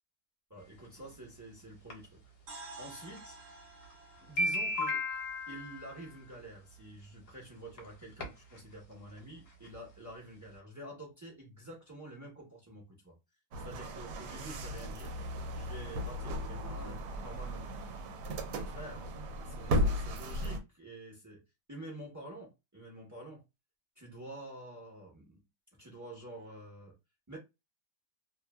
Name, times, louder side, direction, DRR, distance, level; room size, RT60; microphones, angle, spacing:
voice 1, 0.5-2.2 2.8-3.4 4.2-5.0 5.5-13.2 13.6-15.1 15.5-17.7 18.7-21.4 21.7-23.4 24.0-25.4 25.8-26.9 27.3-27.4, right 1 dB, 20° right, 0.4 m, -48 dB
sound 1, 0.8-0.9 1.9-2.0 3.2-3.3 3.8-3.9 4.2-6.2 7.3-7.4 7.8-7.9 8.2-8.6 8.9-9.0 9.2-9.3 9.6-9.7, left 1 dB, 60° left, 1.1 m, -34 dB
sound 2, 2.5-6.4, right 2 dB, 55° right, 0.8 m, -52 dB
sound 3, 13.5-20.6, equal, 80° right, 1.1 m, -36 dB
2.8 x 2.1 x 2.3 m
omnidirectional pair, 1.8 m